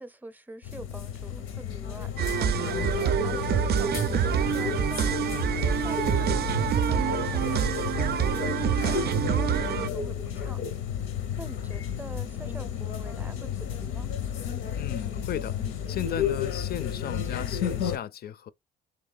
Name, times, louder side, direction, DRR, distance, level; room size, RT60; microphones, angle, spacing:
voice 1, 0.0-5.5 5.8-10.6 11.4-14.1, right 1 dB, 10° right, 0.6 m, -45 dB
sound 1, 0.6-18.0, left 8 dB, 90° left, 0.8 m, -32 dB
sound 2, 2.2-9.9, right 9 dB, 55° right, 0.4 m, -26 dB
voice 2, 14.8-18.5, left 10 dB, 50° left, 0.4 m, -35 dB
3.1 x 3.1 x 3.9 m
cardioid pair, 90°, 20 cm